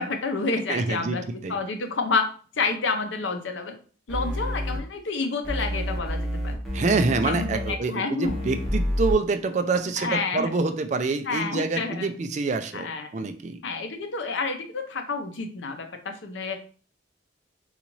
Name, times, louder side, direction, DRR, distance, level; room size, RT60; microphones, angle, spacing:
voice 1, 0.0-2.3 2.6-3.8 4.1-6.6 7.2-8.6 10.0-10.5 11.3-12.1 12.7-13.3 13.6-16.6, left 4 dB, 80° left, 5 dB, 0.6 m, -29 dB
voice 2, 0.7-1.6 6.7-13.6, right 3 dB, 40° right, 7 dB, 0.3 m, -26 dB
sound 1, 4.1-4.8 5.4-7.7 8.2-9.1, equal, ahead, 0.8 m, -29 dB
3.9 x 2.4 x 3.0 m, 0.41 s
head